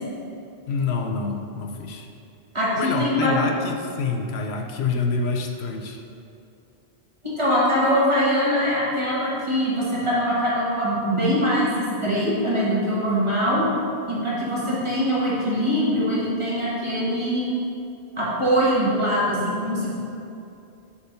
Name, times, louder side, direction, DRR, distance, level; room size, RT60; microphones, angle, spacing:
voice 1, 0.7-2.1 2.8-6.0, left 4 dB, 80° left, 3 dB, 0.9 m, -27 dB
voice 2, 2.5-3.4 7.2-13.6 14.1-17.5 18.2-20.0, equal, 30° right, -8 dB, 1.7 m, -22 dB
7.0 x 3.7 x 5.4 m, 2.6 s
omnidirectional pair, 1.1 m